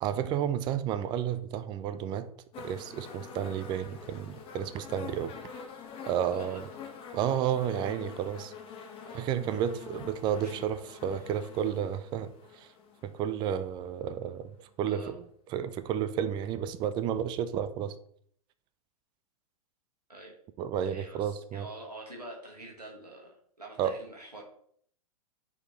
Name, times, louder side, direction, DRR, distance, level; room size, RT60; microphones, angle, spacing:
voice 1, 0.0-2.3 2.6-5.3 6.1-6.6 7.1-8.5 9.1-12.7 13.0-14.5 14.8-15.2 15.5-18.0 20.6-21.7 23.8-24.0, right 9 dB, 25° right, 0.4 m, -31 dB
sound 1, 2.5-13.6 14.6-14.7, left 6 dB, 30° left, 1.4 m, -46 dB
voice 2, 6.3-6.6 9.0-9.3 10.4-10.5 11.1-11.3 14.9-15.1 20.1-20.3 20.8-24.4, right 2 dB, 90° right, 1.6 m, -46 dB
9.1 x 4.3 x 3.1 m
figure-of-eight pair, 100°, 20 cm